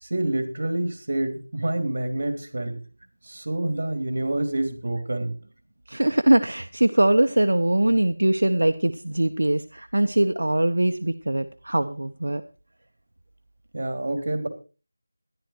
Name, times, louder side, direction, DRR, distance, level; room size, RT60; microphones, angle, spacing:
voice 1, 0.0-2.8 3.2-5.3 13.7-14.5, right 1 dB, 50° right, 7 dB, 3.5 m, -27 dB
voice 2, 5.9-12.4, right 1 dB, 80° right, 8 dB, 1.0 m, -22 dB
13.5 x 11.5 x 4.6 m, 0.34 s
figure-of-eight pair, 175°, 0 cm